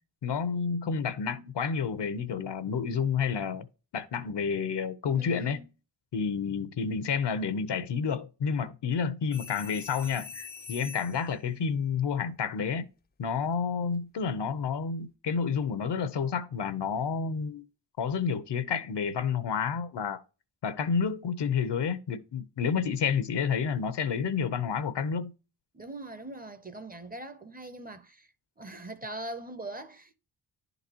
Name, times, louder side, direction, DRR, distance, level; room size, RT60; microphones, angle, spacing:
voice 1, 0.2-3.7 3.9-5.6 6.1-12.9 13.2-17.6 18.0-20.2 20.6-25.3, left 6 dB, 75° left, 0.8 m, -30 dB
voice 2, 5.1-5.7 25.7-28.3 28.6-30.2, right 1 dB, 20° right, 0.6 m, -41 dB
sound 1, 9.3-11.3 13.7-14.0, left 5 dB, 25° left, 0.4 m, -43 dB
11.0 x 4.0 x 2.8 m
wide cardioid pair, 125°, 42 cm